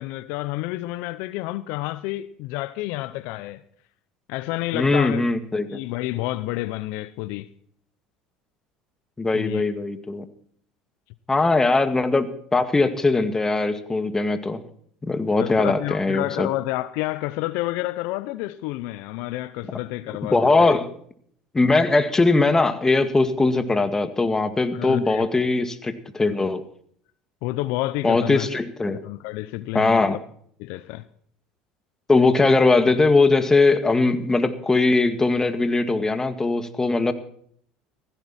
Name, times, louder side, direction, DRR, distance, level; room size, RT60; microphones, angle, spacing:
voice 1, 0.0-3.6 4.3-5.2 5.7-7.5 9.3-9.7 15.4-20.8 24.7-25.3 27.4-28.5 29.0-30.2 30.6-31.0, left 18 dB, 70° left, 0.7 m, -29 dB
voice 2, 4.7-5.8 9.2-10.2 11.3-14.6 15.0-16.5 20.2-20.9 21.5-26.6 28.0-29.0 29.7-30.2 32.1-37.1, left 3 dB, 15° left, 2.0 m, -20 dB
16.5 x 15.5 x 4.3 m
hypercardioid pair, 85°, 3 cm